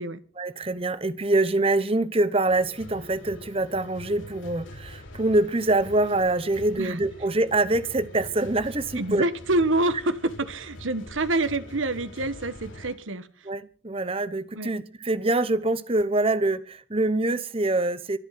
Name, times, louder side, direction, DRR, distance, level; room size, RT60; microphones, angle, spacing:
voice 1, 0.4-9.2 13.4-18.2, right 2 dB, 30° right, 1.0 m, -25 dB
sound 1, 2.4-12.9, left 1 dB, 85° left, 3.9 m, -44 dB
voice 2, 9.0-13.3 14.5-14.7, right 2 dB, 85° right, 1.3 m, -27 dB
24.5 x 8.1 x 5.7 m
head